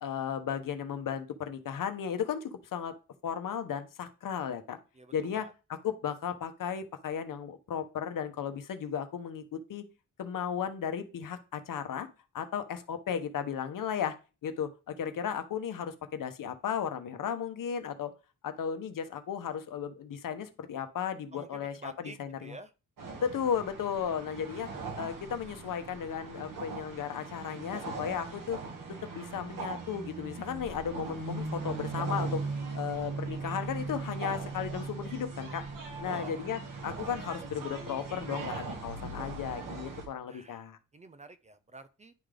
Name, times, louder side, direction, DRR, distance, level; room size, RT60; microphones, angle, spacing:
voice 1, 0.0-2.9 3.2-4.8 5.1-5.4 5.8-9.8 10.2-12.1 12.3-14.2 14.4-18.1 18.4-22.6 23.2-24.7 25.0-28.6 29.1-32.4 32.7-35.6 36.0-40.8, left 8 dB, 75° left, 9 dB, 0.9 m, -35 dB
voice 2, 5.0-5.5 21.3-22.2 22.4-22.7 36.0-36.4 40.3-40.6 40.9-42.1, right 2 dB, 20° right, 11 dB, 0.4 m, -48 dB
sound 1, 23.0-40.0, right 4 dB, 70° right, 1.9 m, -39 dB
10.5 x 3.7 x 3.4 m, 0.32 s
wide cardioid pair, 140°, 33 cm